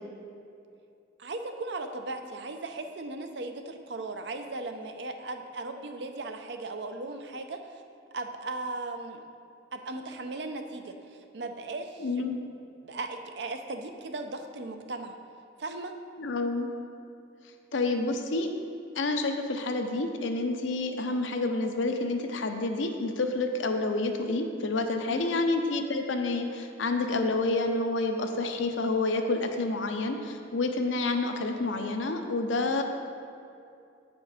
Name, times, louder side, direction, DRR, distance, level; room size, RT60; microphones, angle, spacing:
voice 1, 1.2-7.8 8.1-9.2 9.7-12.1 12.8-15.2 15.6-15.9 25.1-25.3, right 2 dB, 60° right, 6 dB, 0.6 m, -37 dB
voice 2, 12.0-12.4 16.2-16.7 17.7-18.5 19.0-32.8, left 2 dB, 85° left, 5 dB, 0.7 m, -29 dB
8.1 x 5.2 x 4.9 m, 2.5 s
head